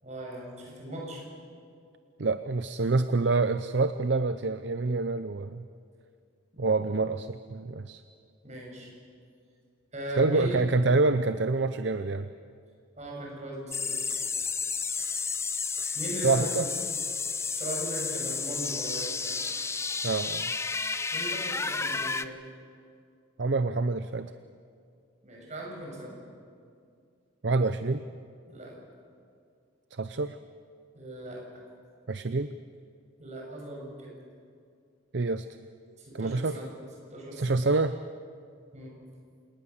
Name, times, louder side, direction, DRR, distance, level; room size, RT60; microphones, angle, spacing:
voice 1, 0.0-1.2 8.4-8.9 9.9-10.7 13.0-14.2 15.9-16.5 17.5-19.4 21.1-22.4 25.2-26.2 28.5-28.7 30.9-31.4 33.2-34.1 36.0-36.7 37.1-37.6 38.7-38.9, right 1 dB, 35° right, -2 dB, 7.1 m, -38 dB
voice 2, 2.2-5.6 6.6-8.0 10.2-12.3 15.0-15.2 15.8-16.0 16.2-16.7 20.0-20.5 23.4-24.3 27.4-28.0 30.0-30.4 32.1-32.5 35.1-35.5 36.1-36.5 37.4-38.0, right 3 dB, 60° right, 11 dB, 0.6 m, -27 dB
sound 1, 13.7-22.2, left 5 dB, 15° left, 0.5 m, -31 dB
27.5 x 19.5 x 7.2 m, 2.2 s
head